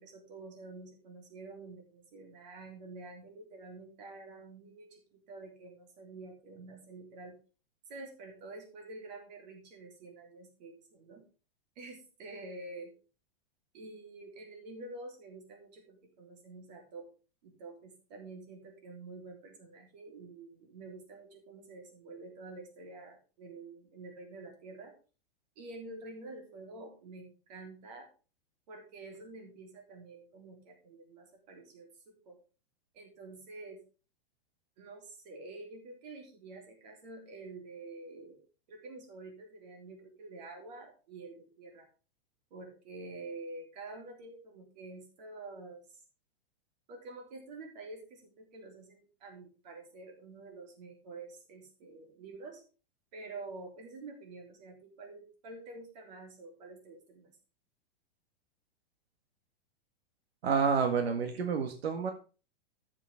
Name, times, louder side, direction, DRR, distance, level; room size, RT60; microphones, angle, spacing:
voice 1, 0.0-7.4 7.9-11.3 11.8-12.9 13.7-17.1 17.4-24.9 25.6-28.1 28.7-32.4 32.9-33.8 34.8-38.4 38.7-41.9 42.5-46.0 46.9-52.6 53.1-57.3, right 3 dB, 45° right, 2 dB, 3.6 m, -48 dB
voice 2, 60.4-62.1, right 6 dB, 80° right, 6 dB, 1.8 m, -29 dB
13.0 x 7.4 x 3.6 m, 0.34 s
supercardioid pair, 175°, 30 cm